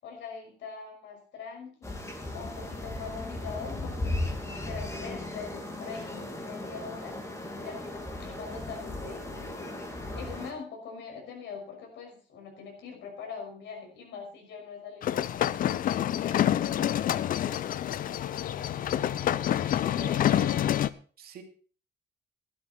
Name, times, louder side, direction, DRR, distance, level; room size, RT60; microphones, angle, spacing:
voice 1, 0.0-7.2 7.6-15.6 16.1-17.5, left 5 dB, 85° left, 1 dB, 5.9 m, -43 dB
sound 1, 1.8-10.5, left 2 dB, 15° left, 2.8 m, -36 dB
sound 2, 15.0-20.9, left 11 dB, 50° left, 0.6 m, -27 dB
voice 2, 18.5-20.5 21.2-21.4, right 7 dB, 55° right, 5 dB, 2.4 m, -47 dB
14.5 x 11.5 x 4.4 m, 0.40 s
cardioid pair, 175°, 18 cm